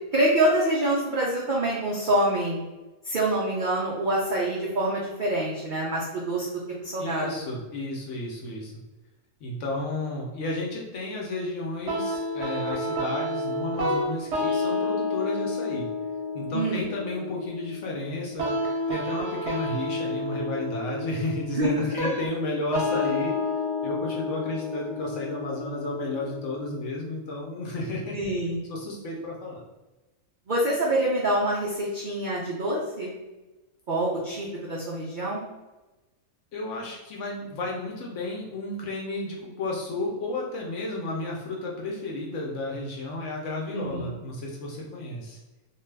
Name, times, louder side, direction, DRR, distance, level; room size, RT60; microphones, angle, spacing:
voice 1, 0.1-2.6 3.0-7.4 16.5-16.8 21.6-21.7 22.0-22.1 28.1-28.6 30.5-33.2 33.9-35.5 43.7-44.1, right 1 dB, 80° right, -5 dB, 0.4 m, -26 dB
voice 2, 7.0-8.7 9.4-15.9 16.3-23.4 23.8-28.2 28.7-29.6 36.5-45.4, left 2 dB, 65° left, -2 dB, 0.8 m, -32 dB
sound 1, 11.9-26.8, left 2 dB, 60° right, 0.8 m, -30 dB
2.5 x 2.3 x 3.2 m, 1.1 s
omnidirectional pair, 1.6 m